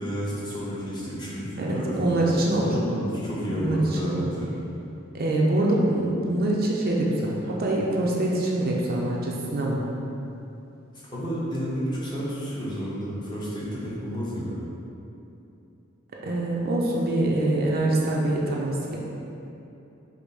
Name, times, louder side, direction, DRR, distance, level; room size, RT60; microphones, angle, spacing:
voice 1, 0.0-4.5 11.1-14.6, equal, 20° left, -8 dB, 0.9 m, -31 dB
voice 2, 1.6-2.8 3.5-4.3 5.1-9.9 16.2-19.0, right 1 dB, 50° right, -3 dB, 0.5 m, -24 dB
5.2 x 2.1 x 4.7 m, 2.8 s
head